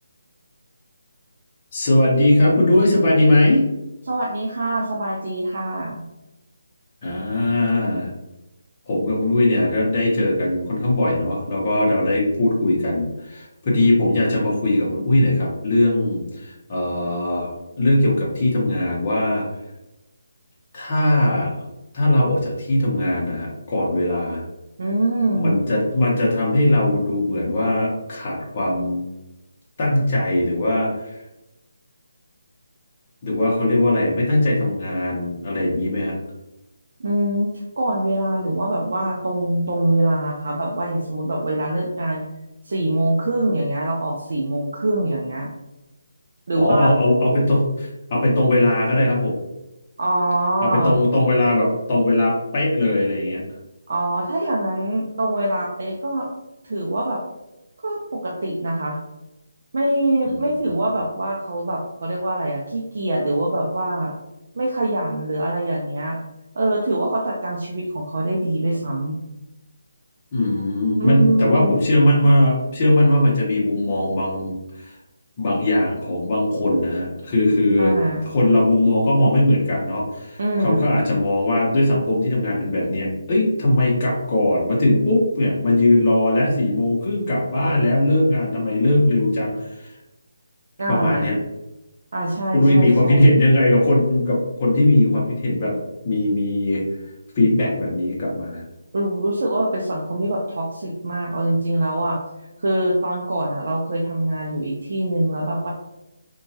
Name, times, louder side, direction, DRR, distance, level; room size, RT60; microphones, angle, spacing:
voice 1, 1.7-3.6 7.0-8.1 8.9-19.4 20.7-21.5 21.9-24.4 25.4-29.0 29.8-31.2 33.2-36.2 46.6-49.4 50.6-53.4 60.3-60.4 70.3-74.9 75.4-77.9 78.3-89.9 90.9-91.3 92.5-95.8 96.0-96.8 97.4-98.6, left 1 dB, 25° left, -5 dB, 0.7 m, -19 dB
voice 2, 4.1-6.0 24.8-25.6 37.0-42.2 42.6-45.5 46.5-46.9 50.0-51.0 53.9-56.3 56.6-57.2 57.8-59.0 59.7-64.1 64.5-66.2 66.5-69.2 71.0-71.7 77.8-78.3 80.4-80.9 90.8-91.3 92.1-93.4 98.9-102.2 102.6-105.7, right 1 dB, 55° right, -3 dB, 0.5 m, -23 dB
2.8 x 2.2 x 2.7 m, 0.95 s
hypercardioid pair, 170°, 0 cm